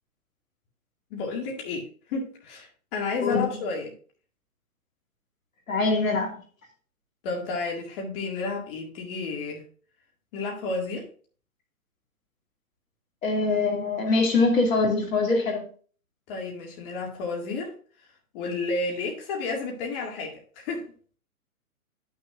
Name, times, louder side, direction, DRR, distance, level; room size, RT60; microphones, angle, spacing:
voice 1, 1.1-3.9 7.2-9.6 10.3-11.1 16.3-17.7 18.3-20.8, left 3 dB, 40° left, 2.1 m, -31 dB
voice 2, 3.2-3.5 5.7-6.3 13.2-15.7, left 3 dB, 65° left, 2.4 m, -23 dB
11.0 x 6.4 x 2.5 m
figure-of-eight pair, 125°, 43 cm